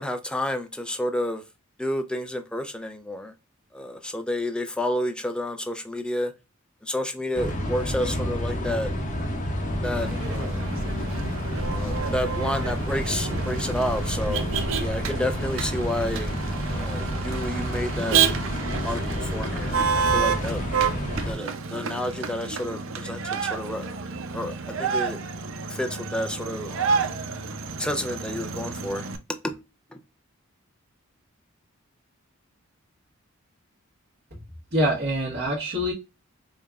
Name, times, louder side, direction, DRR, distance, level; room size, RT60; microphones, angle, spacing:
voice 1, 0.0-1.4 1.8-3.3 3.7-6.3 6.9-8.9 9.8-10.6 11.7-14.5 14.8-16.3 16.7-18.2 18.8-19.7 20.1-20.6 21.3-23.2 23.5-23.9 24.3-24.5 24.8-25.2 25.7-27.0 27.8-29.0 29.4-29.5, left 1 dB, 5° left, 0.4 m, -30 dB
sound 1, 7.3-21.3, equal, 35° left, 0.8 m, -29 dB
Motor vehicle (road), 9.9-29.2, right 6 dB, 65° right, 0.5 m, -29 dB
voice 2, 34.7-35.9, equal, 50° right, 1.1 m, -25 dB
5.2 x 2.2 x 2.3 m
head